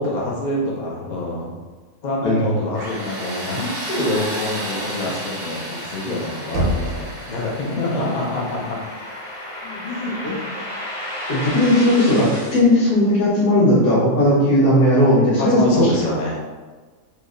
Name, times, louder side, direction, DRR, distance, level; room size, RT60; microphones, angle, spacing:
voice 1, 0.0-1.5 2.0-8.8 9.8-10.4 15.4-16.4, left 1 dB, 70° left, -3 dB, 0.4 m, -25 dB
voice 2, 2.2-2.5 9.6-9.8 11.3-15.9, left 1 dB, 90° left, -9 dB, 1.5 m, -16 dB
Tools, 2.7-11.5, right 1 dB, 25° right, 0.7 m, -34 dB
sound 1, 5.0-12.6, left 1 dB, 35° left, 1.2 m, -34 dB
Knock, 6.5-7.5, equal, 55° right, 0.9 m, -24 dB
3.2 x 2.1 x 3.6 m, 1.4 s
omnidirectional pair, 1.5 m